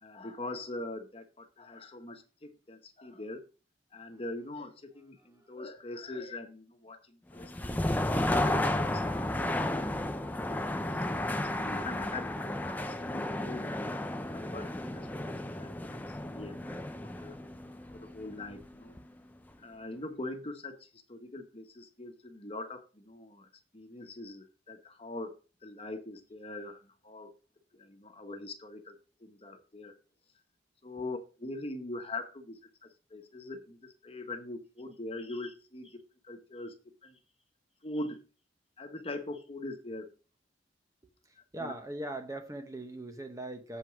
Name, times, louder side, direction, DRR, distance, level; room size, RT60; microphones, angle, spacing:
voice 1, 0.0-3.4 3.9-10.6 10.9-17.4 17.9-18.9 19.6-25.3 25.6-27.3 27.7-29.9 30.8-36.7 37.0-37.2 37.8-38.2 38.8-40.1 41.6-41.7, left 2 dB, 30° left, 1.3 m, -43 dB
sound 1, 7.3-19.2, left 1 dB, 10° left, 0.6 m, -33 dB
voice 2, 41.5-43.8, right 2 dB, 20° right, 0.9 m, -40 dB
7.7 x 5.4 x 6.0 m
head